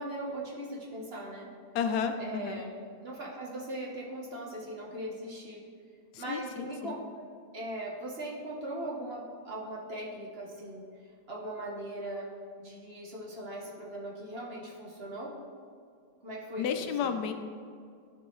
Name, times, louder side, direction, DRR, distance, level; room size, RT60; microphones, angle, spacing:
voice 1, 0.0-1.5 2.2-2.7 3.0-5.6 6.2-7.3 7.5-10.8 11.3-12.3 12.6-15.3 16.2-17.1, right 1 dB, 45° right, -3 dB, 1.1 m, -39 dB
voice 2, 1.7-2.6 6.1-6.9 16.6-17.3, left 7 dB, 90° left, 7 dB, 1.2 m, -32 dB
11.5 x 4.7 x 3.1 m, 2.2 s
omnidirectional pair, 1.7 m